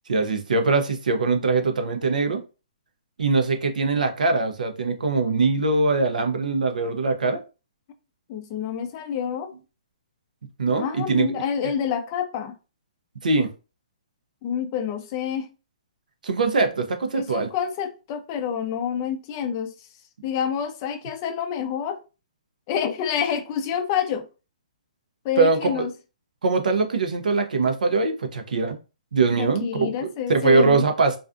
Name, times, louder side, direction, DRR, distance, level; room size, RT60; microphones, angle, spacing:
voice 1, 0.1-2.4 3.2-7.4 10.6-11.3 13.2-13.5 16.2-17.5 25.4-25.9 26.4-28.8 29.1-31.2, right 3 dB, 85° right, 0.6 m, -22 dB
voice 2, 8.3-9.5 10.7-12.5 14.4-15.5 17.1-19.7 20.2-22.0 22.7-24.2 25.2-25.9 29.4-30.8, left 8 dB, 30° left, 0.3 m, -27 dB
2.4 x 2.3 x 2.4 m
hypercardioid pair, 155°, 4 cm